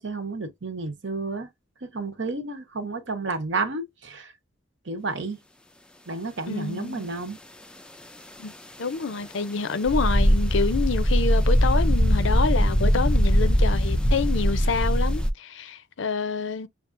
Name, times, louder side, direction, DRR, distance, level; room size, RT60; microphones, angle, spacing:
voice 1, 0.0-1.5 1.8-4.3 4.9-5.4 6.1-7.4, right 3 dB, 60° right, 0.9 m, -31 dB
voice 2, 6.5-7.1 8.4-8.5 8.8-16.7, left 4 dB, 65° left, 0.5 m, -27 dB
sound 1, 9.9-15.3, equal, 5° left, 0.3 m, -21 dB
6.6 x 2.4 x 2.6 m
head